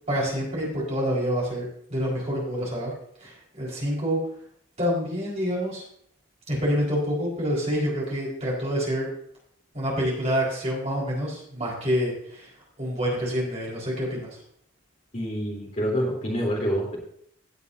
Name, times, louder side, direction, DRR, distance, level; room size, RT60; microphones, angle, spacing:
voice 1, 0.1-2.9 3.2-4.2 4.8-5.8 6.5-9.1 9.7-12.5 12.8-14.3, equal, 30° right, -5 dB, 4.7 m, -27 dB
voice 2, 15.1-17.0, equal, 35° left, -2 dB, 3.5 m, -27 dB
16.5 x 8.2 x 2.8 m, 0.67 s
head